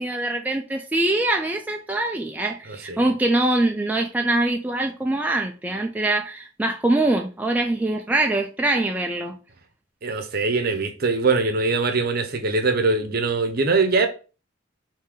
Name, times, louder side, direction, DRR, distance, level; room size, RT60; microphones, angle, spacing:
voice 1, 0.0-9.3, right 2 dB, 10° right, 0.3 m, -23 dB
voice 2, 10.0-14.1, right 3 dB, 50° right, 0.7 m, -22 dB
5.0 x 2.7 x 3.6 m
head